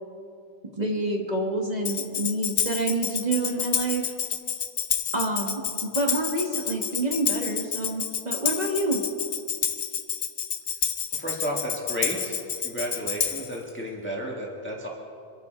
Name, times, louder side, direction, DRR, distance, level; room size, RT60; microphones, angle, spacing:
voice 1, 0.6-4.1 5.1-9.0, right 2 dB, 30° right, 1 dB, 2.0 m, -28 dB
Tambourine, 1.8-13.6, left 8 dB, 50° left, 0.9 m, -29 dB
voice 2, 11.1-12.4 12.6-14.9, equal, 10° left, -2 dB, 1.8 m, -32 dB
26.0 x 11.0 x 4.6 m, 2.4 s
omnidirectional pair, 1.4 m